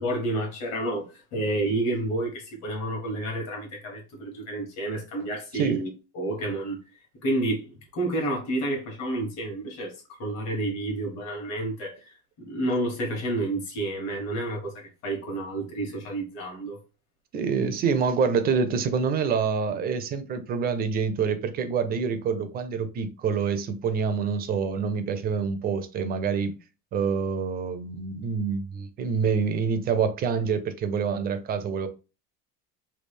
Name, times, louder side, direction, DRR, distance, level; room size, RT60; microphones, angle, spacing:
voice 1, 0.0-5.9 6.1-6.8 7.2-16.8, right 1 dB, 55° left, 1.3 m, -30 dB
voice 2, 17.3-26.6 26.9-31.9, right 6 dB, 30° right, 0.4 m, -26 dB
3.3 x 2.3 x 3.3 m
cardioid pair, 160°, 32 cm